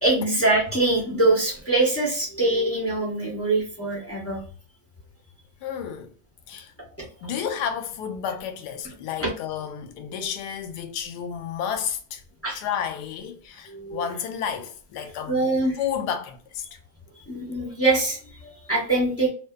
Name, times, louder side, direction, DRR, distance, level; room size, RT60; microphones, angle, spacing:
voice 1, 0.0-4.4 7.0-7.1 9.2-9.3 12.4-12.6 13.7-14.1 15.3-15.8 17.3-19.3, right 2 dB, 25° left, 0.3 m, -23 dB
voice 2, 5.6-6.1 6.5-6.7 7.2-12.2 12.5-15.5 15.8-16.8, left 8 dB, 75° left, 1.1 m, -31 dB
2.6 x 2.4 x 2.2 m
omnidirectional pair, 1.9 m